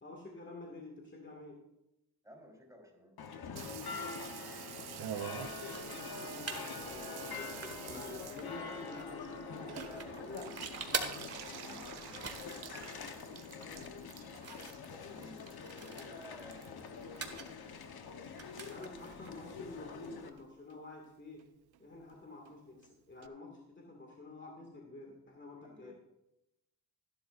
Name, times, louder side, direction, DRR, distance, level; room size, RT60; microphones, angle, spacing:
voice 1, 0.0-1.6 5.8-10.5 15.6-15.7 16.2-16.3 18.6-21.5 21.8-25.9, left 2 dB, 30° left, 0 dB, 2.2 m, -49 dB
voice 2, 2.2-3.2 9.4-14.0 14.9-17.6 25.6-25.9, equal, 10° right, 0 dB, 4.0 m, -56 dB
sound 1, 3.2-20.3, left 5 dB, 65° left, 1.2 m, -45 dB
Water tap faucet / Bathtub (filling or washing), 3.6-18.1 18.4-19.1 19.4-19.5 19.7-19.8 20.0-20.4 20.7-20.8 21.0-21.1 21.4-21.5 21.7-21.8 22.1-22.2 22.5-22.6 22.8-22.9 23.2-23.3, right 10 dB, 70° right, 0.8 m, -48 dB
sound 2, 5.3-20.5, right 4 dB, 40° right, 1.8 m, -47 dB
15.5 x 11.5 x 2.6 m, 0.89 s
cardioid pair, 80°, 39 cm